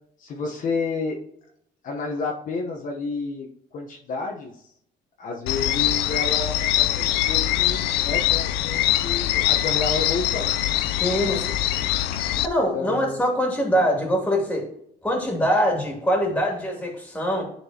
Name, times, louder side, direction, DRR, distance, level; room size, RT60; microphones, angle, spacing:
voice 1, 0.2-1.2 1.8-4.6 5.2-10.5 11.2-11.4 12.7-13.2, left 3 dB, 50° left, 0 dB, 1.0 m, -30 dB
sound 1, 5.5-12.5, left 13 dB, 90° left, 0.4 m, -23 dB
voice 2, 11.0-11.7 12.4-14.7 15.0-17.4, equal, 10° left, 0 dB, 2.6 m, -23 dB
11.0 x 4.5 x 2.8 m, 0.72 s
cardioid pair, 110°, 17 cm